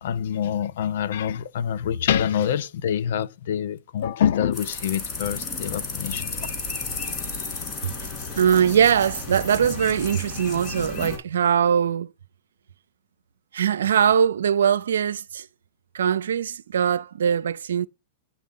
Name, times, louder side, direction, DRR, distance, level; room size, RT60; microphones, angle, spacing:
voice 1, 0.0-6.4, left 9 dB, 70° left, 0.5 m, -26 dB
sound 1, 4.5-11.2, left 4 dB, 30° left, 3.4 m, -33 dB
voice 2, 8.4-12.1 13.5-15.5 15.9-17.9, right 8 dB, 85° right, 0.4 m, -21 dB
9.9 x 4.0 x 3.6 m
hypercardioid pair, 130°, 0 cm